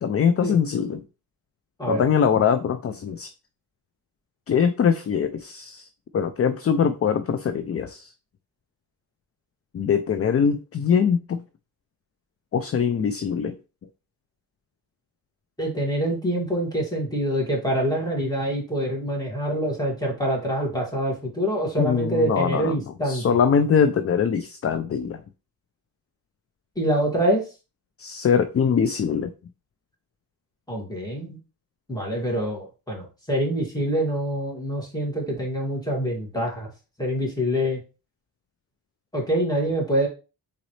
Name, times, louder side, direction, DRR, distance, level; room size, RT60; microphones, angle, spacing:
voice 1, 0.0-1.0 1.9-3.3 4.5-5.9 6.1-8.1 9.7-11.4 12.5-13.5 21.8-22.7 23.0-25.2 28.0-29.3, left 7 dB, 35° left, 0.4 m, -22 dB
voice 2, 15.6-23.2 26.8-27.4 30.7-31.4 31.9-36.7 37.0-37.8 39.1-40.1, right 1 dB, 10° left, 2.2 m, -25 dB
4.1 x 3.9 x 3.1 m
cardioid pair, 90°, 41 cm